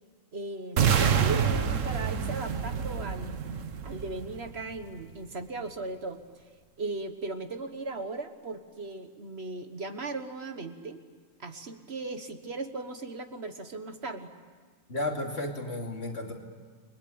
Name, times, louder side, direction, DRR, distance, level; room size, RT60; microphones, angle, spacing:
voice 1, 0.3-3.4 3.8-6.2 6.8-11.0 11.4-14.3, right 3 dB, 55° right, 7 dB, 1.7 m, -37 dB
sound 1, 0.8-4.8, right 7 dB, 75° right, 1.5 m, -27 dB
voice 2, 14.9-16.3, left 2 dB, 55° left, 1 dB, 3.2 m, -33 dB
30.0 x 21.5 x 8.8 m, 1.5 s
omnidirectional pair, 1.3 m